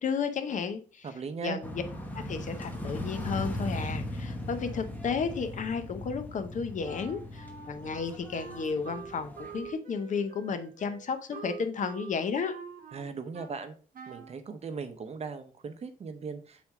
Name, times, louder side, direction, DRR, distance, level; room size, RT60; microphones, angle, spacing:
voice 1, 0.0-1.1 1.4-1.8 2.1-12.5, left 5 dB, 60° left, 9 dB, 0.8 m, -33 dB
voice 2, 1.0-1.6 12.9-13.7 14.1-16.6, right 5 dB, 45° right, 8 dB, 0.8 m, -38 dB
sound 1, 1.6-9.7, left 1 dB, 10° left, 1.0 m, -38 dB
Wind instrument woodwind instrument, 6.8-13.6 13.9-14.4, right 6 dB, 75° right, 1.1 m, -46 dB
6.2 x 3.5 x 4.9 m, 0.40 s
wide cardioid pair, 175°, 15 cm